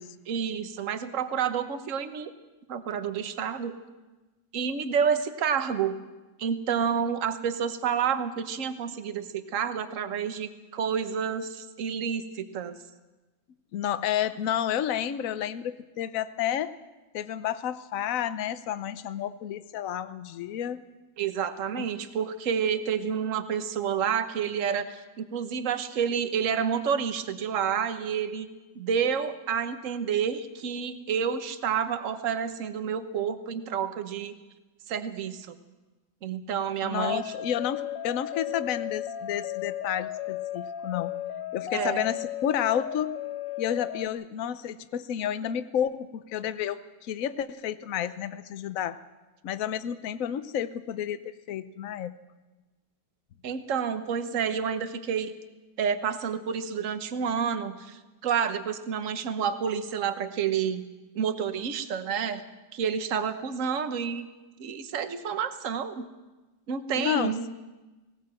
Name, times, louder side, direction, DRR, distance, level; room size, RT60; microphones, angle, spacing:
voice 1, 0.3-2.3 2.7-3.7 4.5-6.0 6.4-12.8 21.2-28.5 28.8-34.3 34.9-35.5 36.2-37.3 41.7-42.0 53.4-55.3 55.8-60.9 61.1-62.4 62.7-64.3 64.6-66.1 66.7-67.5, right 7 dB, 50° right, 10 dB, 1.3 m, -29 dB
voice 2, 13.7-16.7 17.1-20.8 21.8-21.9 36.8-41.2 41.5-43.2 43.6-49.0 49.4-52.2 66.9-67.3, left 10 dB, 55° left, 13 dB, 1.1 m, -31 dB
sound 1, 37.0-44.1, left 11 dB, 90° left, 1.5 m, -35 dB
19.0 x 18.0 x 7.6 m, 1.2 s
omnidirectional pair, 2.0 m